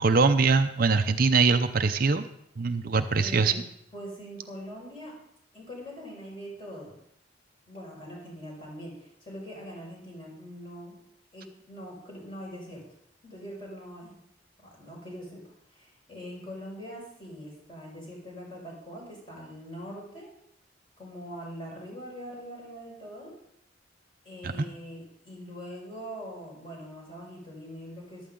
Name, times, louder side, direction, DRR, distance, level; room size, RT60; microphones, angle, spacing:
voice 1, 0.0-2.2 2.6-3.5 24.4-24.7, right 4 dB, 50° right, 8 dB, 0.6 m, -23 dB
voice 2, 3.2-3.6 3.9-5.1 5.5-7.0 7.7-11.0 11.3-12.8 13.2-14.2 14.6-15.4 15.7-20.3 21.0-23.3 24.2-28.3, equal, 25° left, -3 dB, 5.6 m, -42 dB
14.5 x 12.0 x 3.8 m, 0.73 s
head